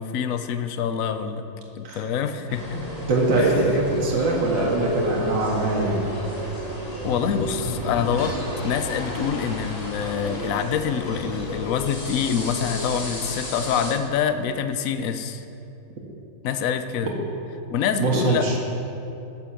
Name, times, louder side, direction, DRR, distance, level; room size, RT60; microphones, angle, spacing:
voice 1, 0.0-1.4 1.8-2.8 3.4-3.5 7.0-8.4 8.6-15.4 16.4-17.1 17.7-18.5, left 8 dB, 65° left, 9 dB, 0.8 m, -26 dB
sound 1, 2.5-13.9, left 1 dB, 20° left, 1.6 m, -33 dB
voice 2, 2.7-6.1 18.0-18.6, right 2 dB, 65° right, -3 dB, 2.5 m, -22 dB
sound 2, 5.5-11.3, equal, 50° right, 3.1 m, -36 dB
13.0 x 9.6 x 7.1 m, 2.9 s
omnidirectional pair, 2.1 m